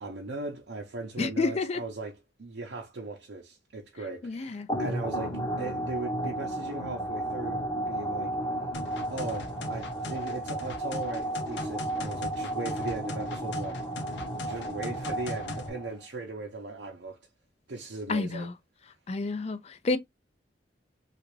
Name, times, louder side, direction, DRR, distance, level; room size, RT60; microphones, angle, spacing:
voice 1, 0.0-8.3 9.1-13.8 14.4-17.2 17.7-18.5, right 3 dB, 80° right, 0.7 m, -38 dB
voice 2, 1.2-1.8 4.2-4.7 18.1-18.5 19.1-20.0, left 3 dB, 35° left, 0.4 m, -29 dB
sound 1, 4.7-16.0, right 1 dB, 20° left, 0.8 m, -33 dB
sound 2, 8.7-15.7, left 2 dB, 80° left, 0.7 m, -40 dB
3.4 x 2.4 x 3.1 m
head